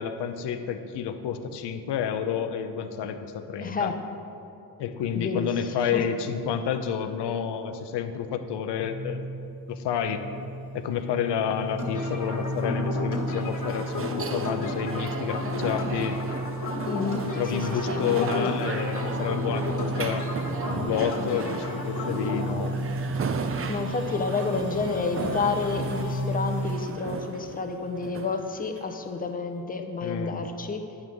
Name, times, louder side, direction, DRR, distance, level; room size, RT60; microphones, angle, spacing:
voice 1, 0.0-3.9 4.8-9.3 9.7-10.2 10.7-16.2 17.3-20.3 20.7-22.7 30.0-30.4, left 7 dB, 70° left, 9 dB, 0.7 m, -29 dB
voice 2, 3.6-4.0 5.1-5.5 5.9-6.0 16.8-18.5 23.7-30.8, left 4 dB, 20° left, 5 dB, 0.7 m, -30 dB
sound 1, 8.8-26.8, equal, 85° left, 1.3 m, -34 dB
sound 2, 11.8-22.4, left 2 dB, 45° left, 1.6 m, -33 dB
sound 3, 12.2-29.2, right 5 dB, 30° right, 0.5 m, -37 dB
8.7 x 3.7 x 6.2 m, 2.7 s
supercardioid pair, 55°, 43 cm